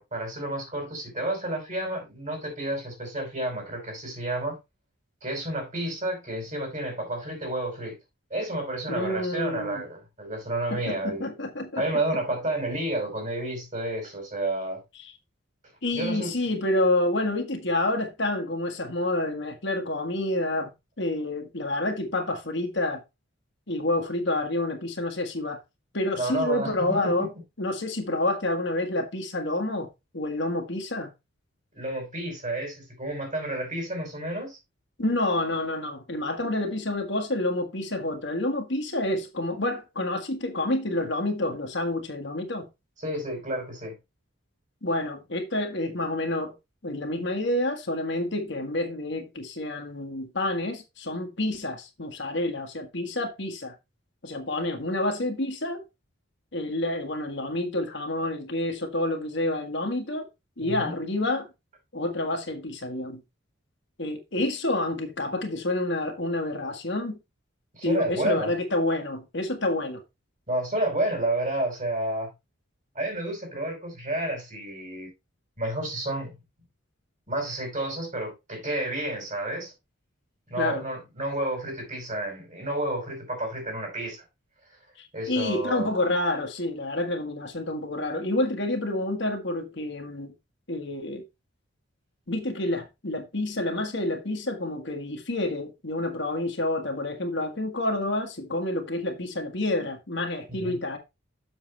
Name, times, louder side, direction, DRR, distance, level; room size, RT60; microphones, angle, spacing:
voice 1, 0.0-4.6 5.2-7.9 8.3-11.3 11.8-14.8 15.9-16.3 26.2-27.3 31.8-34.6 43.0-43.9 60.6-60.9 67.7-68.5 70.5-72.3 72.9-75.1 75.6-76.3 77.3-79.7 80.5-84.2 85.1-85.9 100.5-100.7, right 1 dB, 35° right, 4.9 m, -30 dB
voice 2, 8.9-9.8 10.7-11.8 15.0-15.1 15.8-23.0 23.7-25.6 25.9-27.3 27.6-29.9 30.1-31.1 35.0-42.7 44.8-46.5 46.8-53.7 54.2-55.8 56.5-60.3 60.6-61.5 61.9-63.2 64.0-67.2 67.8-70.0 80.6-80.8 85.0-90.3 90.7-91.2 92.3-101.0, left 1 dB, 60° left, 1.7 m, -28 dB
7.4 x 6.8 x 3.3 m
head